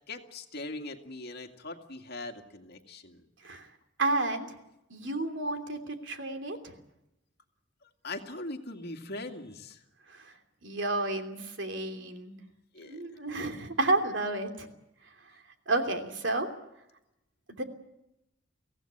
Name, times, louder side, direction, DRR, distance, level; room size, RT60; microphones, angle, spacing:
voice 1, 0.1-3.2 8.0-9.8 12.7-13.0, left 2 dB, 55° left, 4 dB, 2.2 m, -41 dB
voice 2, 4.0-4.6 4.9-6.7 10.1-10.3 10.6-12.3 12.8-14.7 15.7-16.5 17.6-17.7, right 2 dB, 70° right, 6 dB, 3.0 m, -31 dB
23.5 x 16.5 x 8.7 m, 0.89 s
head